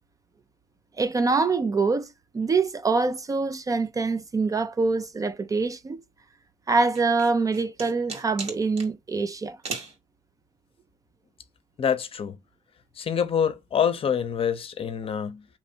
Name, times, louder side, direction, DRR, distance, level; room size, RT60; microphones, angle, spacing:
voice 1, 1.0-2.1 2.3-6.0 6.7-9.6, right 4 dB, 25° right, 0.4 m, -24 dB
sound 1, 6.9-8.9 9.6-10.0, right 4 dB, 55° right, 1.9 m, -36 dB
voice 2, 11.8-12.3 12.9-15.4, left 7 dB, 45° left, 0.7 m, -26 dB
3.3 x 3.0 x 4.2 m
cardioid pair, 100°, 13 cm